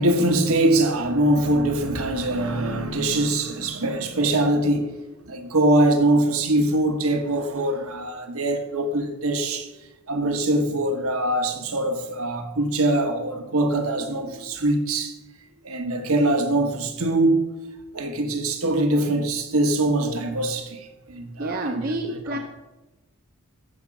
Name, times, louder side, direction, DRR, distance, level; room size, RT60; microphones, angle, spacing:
voice 1, 0.0-4.9 5.3-9.7 10.1-15.1 15.6-17.5 17.9-22.4, right 1 dB, 70° right, 1.3 m, -23 dB
voice 2, 21.4-22.4, right 1 dB, 40° right, 0.7 m, -28 dB
14.0 x 5.1 x 5.9 m
head